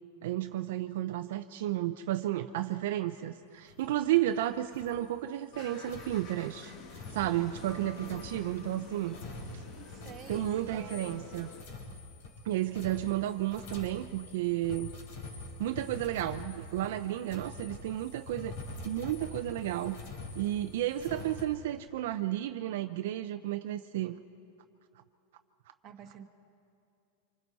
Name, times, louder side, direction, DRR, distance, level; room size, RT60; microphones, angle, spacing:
voice 1, 0.2-9.2 9.5-9.6 10.3-11.5 12.4-14.9 15.6-18.5 18.8-20.0 20.3-24.2, right 13 dB, 70° right, 8 dB, 0.6 m, -32 dB
sound 1, 3.7-4.4 4.7-5.0 5.8-21.4, left 3 dB, 60° left, 5.0 m, -45 dB
sound 2, 5.5-11.6, left 4 dB, 35° left, 1.7 m, -48 dB
voice 2, 9.7-11.2 25.8-26.2, right 9 dB, 30° right, 4 dB, 1.3 m, -49 dB
26.5 x 24.5 x 4.1 m, 2.5 s
supercardioid pair, 155°, 0 cm